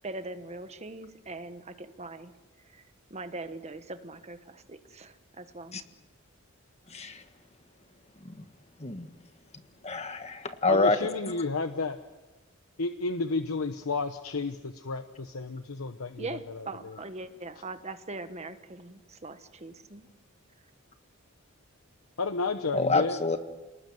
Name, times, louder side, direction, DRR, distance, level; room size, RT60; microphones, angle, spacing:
voice 1, 0.0-2.3 2.7-2.8 3.1-5.8 16.2-20.1, right 2 dB, 30° right, 9 dB, 1.4 m, -41 dB
voice 2, 6.9-7.2 8.2-8.3 8.8-9.1 9.8-11.0 22.7-23.4, left 3 dB, 30° left, 8 dB, 1.5 m, -27 dB
voice 3, 10.7-12.0 12.8-17.0 22.2-23.4, left 3 dB, 85° left, 8 dB, 1.0 m, -32 dB
29.0 x 19.5 x 7.9 m, 1.2 s
head